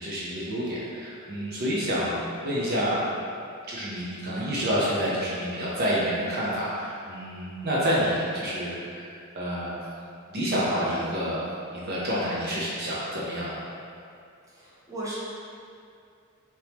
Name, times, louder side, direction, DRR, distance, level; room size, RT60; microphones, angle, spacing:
voice 1, 0.0-3.0 3.7-9.9 10.3-11.5 11.7-13.6, equal, 45° right, -7 dB, 0.7 m, -28 dB
voice 2, 14.6-15.1, right 1 dB, 15° right, -9 dB, 0.8 m, -36 dB
4.3 x 2.9 x 3.5 m, 2.4 s
head